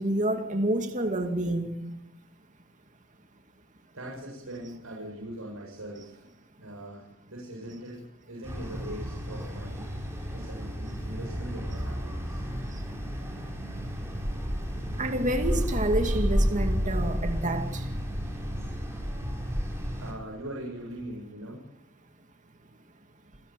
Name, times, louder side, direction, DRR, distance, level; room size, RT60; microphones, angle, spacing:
voice 1, 0.0-2.0 12.7-12.8 15.0-17.9, right 1 dB, 35° right, 2.4 m, -28 dB
voice 2, 3.9-6.2 6.6-8.0 8.2-9.9 10.3-12.4 20.0-21.6, right 1 dB, 80° right, 7.9 m, -41 dB
sound 1, 8.4-20.1, equal, 15° right, 6.8 m, -31 dB
29.5 x 16.5 x 9.3 m
head